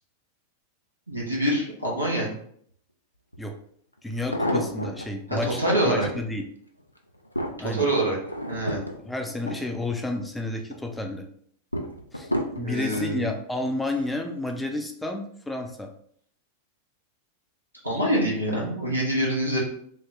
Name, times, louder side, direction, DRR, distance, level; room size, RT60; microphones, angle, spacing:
voice 1, 1.1-2.3 5.3-6.1 7.6-8.2 8.5-8.8 12.5-13.3 17.8-19.6, right 1 dB, 85° right, -4 dB, 1.0 m, -25 dB
sound 1, 3.3-3.4 4.1-5.1 5.6-6.2 6.8-10.2 10.6-11.1 11.7-13.1 13.8-14.2 14.5-14.6, equal, 85° left, 0.4 m, -31 dB
voice 2, 4.0-6.4 7.6-7.9 9.0-11.2 12.1-12.3 12.6-15.9, left 2 dB, 5° left, 3 dB, 0.4 m, -31 dB
3.0 x 2.1 x 3.6 m, 0.64 s
figure-of-eight pair, 90°, 0 cm